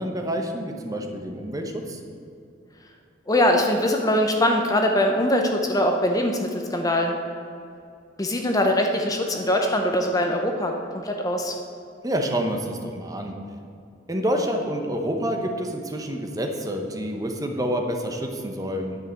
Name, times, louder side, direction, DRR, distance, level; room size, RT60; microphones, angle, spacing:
voice 1, 0.0-2.0 12.0-13.3 14.1-19.0, equal, 20° right, 3 dB, 0.9 m, -28 dB
voice 2, 3.3-7.2 8.2-10.7 11.0-11.5, left 1 dB, 20° left, 3 dB, 0.7 m, -22 dB
9.8 x 5.5 x 7.5 m, 2.6 s
head